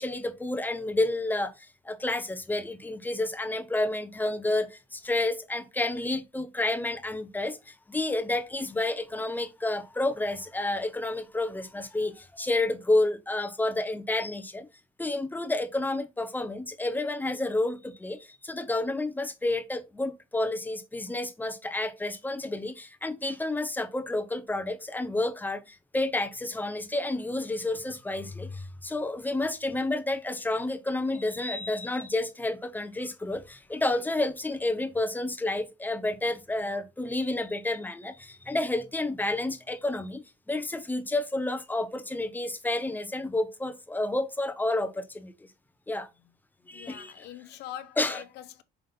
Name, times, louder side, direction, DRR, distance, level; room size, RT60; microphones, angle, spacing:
voice 1, 0.0-14.7 15.0-45.3 45.9-46.1 46.7-47.3 48.0-48.2, left 2 dB, 10° left, 0.9 m, -30 dB
voice 2, 46.6-48.6, left 11 dB, 80° left, 0.9 m, -43 dB
5.7 x 3.8 x 5.3 m
cardioid pair, 110°, 17 cm